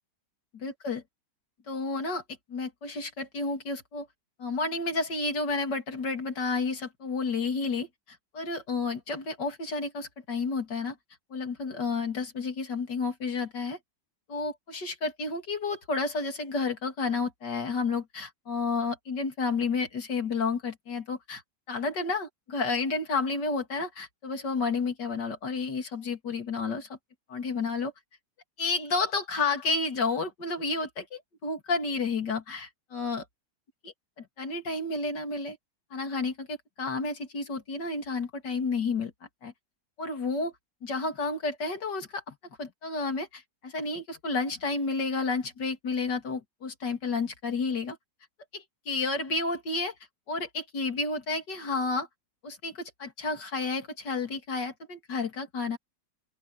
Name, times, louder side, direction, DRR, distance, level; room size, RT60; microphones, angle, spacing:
voice 1, 0.5-1.0 1.7-2.2 2.5-4.1 4.4-7.9 8.3-11.0 11.3-13.8 14.3-21.4 21.7-26.9 27.3-27.9 28.6-33.2 34.2-35.6 35.9-39.1 39.4-39.5 40.0-40.5 40.8-48.0 48.5-49.9 50.3-52.1 52.4-55.8, left 4 dB, 65° left, 3.3 m, -31 dB
open air
omnidirectional pair, 2.0 m